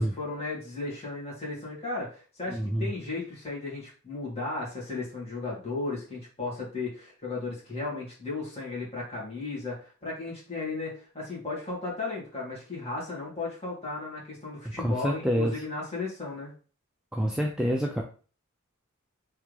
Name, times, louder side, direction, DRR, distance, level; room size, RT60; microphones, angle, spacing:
voice 1, 0.0-16.5, left 3 dB, 30° left, -5 dB, 1.9 m, -35 dB
voice 2, 2.5-2.9 14.8-15.6 17.1-18.0, equal, 5° right, 0 dB, 0.4 m, -27 dB
3.6 x 3.3 x 3.2 m, 0.39 s
head